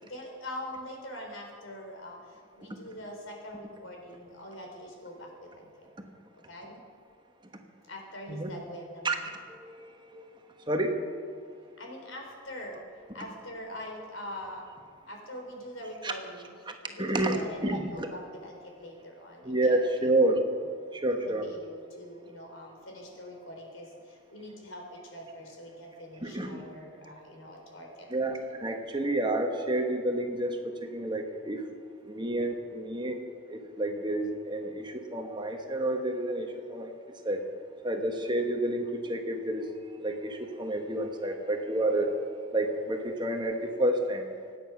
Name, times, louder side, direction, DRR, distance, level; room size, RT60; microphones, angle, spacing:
voice 1, 0.0-5.9 6.5-6.8 7.8-9.3 11.8-14.7 15.1-20.1 21.2-28.3, left 1 dB, 85° left, 1 dB, 4.1 m, -43 dB
voice 2, 9.6-10.2 10.7-11.0 16.0-16.1 17.0-18.1 19.4-20.4 21.0-21.5 26.2-26.6 28.1-30.5 30.9-31.6 32.1-33.2 33.5-36.9 37.2-37.4 37.8-39.6 40.0-42.1 42.5-44.2, right 1 dB, 25° right, 4 dB, 1.3 m, -29 dB
25.0 x 9.5 x 6.0 m, 2.1 s
head